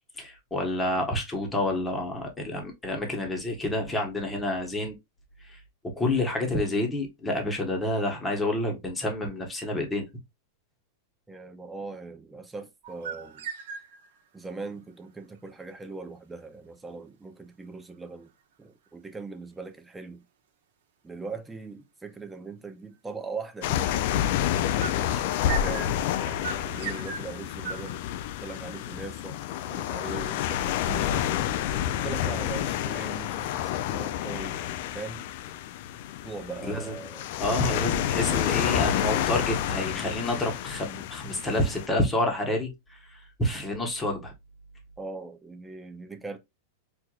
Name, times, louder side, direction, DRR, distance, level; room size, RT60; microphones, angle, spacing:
voice 1, 0.2-5.0 5.5-5.6 6.0-10.1 36.6-37.0 37.4-44.3, left 1 dB, 10° left, 1.2 m, -29 dB
voice 2, 11.3-13.5 14.3-18.3 18.6-20.2 21.0-24.3 24.7-25.9 26.6-28.0 28.4-29.4 29.7-31.3 31.8-35.3 36.2-37.2 45.0-46.4, right 4 dB, 10° right, 0.6 m, -40 dB
sound 1, 12.8-14.2 24.8-27.9, right 7 dB, 70° right, 1.0 m, -38 dB
sound 2, 23.6-41.9, left 11 dB, 60° left, 0.3 m, -29 dB
4.5 x 2.5 x 2.4 m
hypercardioid pair, 130°, 0 cm